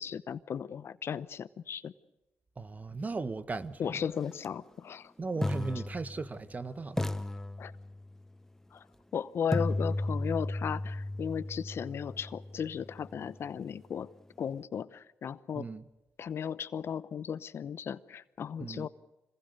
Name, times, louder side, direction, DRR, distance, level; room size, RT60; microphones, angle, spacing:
voice 1, 0.0-1.9 3.8-5.1 7.6-7.7 8.7-8.8 9.1-14.1 14.4-15.7 16.2-18.9, left 7 dB, 60° left, 0.9 m, -36 dB
voice 2, 2.6-4.1 5.2-7.1 15.5-15.8 18.6-18.9, right 3 dB, 35° right, 1.5 m, -37 dB
sound 1, 4.3-4.5 5.4-6.6 7.0-8.2 9.5-13.4, left 1 dB, 10° left, 1.2 m, -35 dB
26.0 x 20.5 x 6.6 m
supercardioid pair, 60°, 5 cm